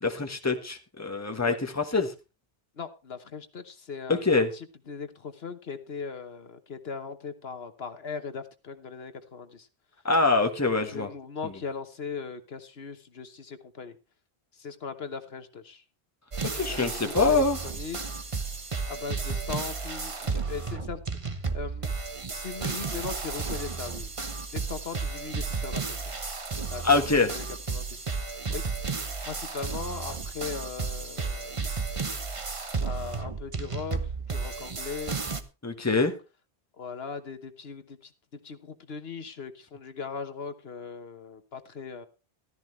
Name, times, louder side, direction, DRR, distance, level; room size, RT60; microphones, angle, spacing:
voice 1, 0.0-2.1 4.1-4.5 10.0-11.1 16.5-17.6 26.8-27.3 35.6-36.1, left 3 dB, 15° left, 5 dB, 1.3 m, -24 dB
voice 2, 2.8-9.7 10.9-14.0 14.5-15.8 16.5-18.0 18.9-21.9 22.3-24.1 24.5-26.3 26.7-28.6 29.2-31.6 32.8-35.2 36.8-42.1, left 5 dB, 65° left, 9 dB, 1.3 m, -39 dB
sound 1, 16.3-35.4, right 4 dB, 30° right, 1.0 m, -33 dB
14.5 x 13.0 x 3.2 m, 0.30 s
omnidirectional pair, 1.1 m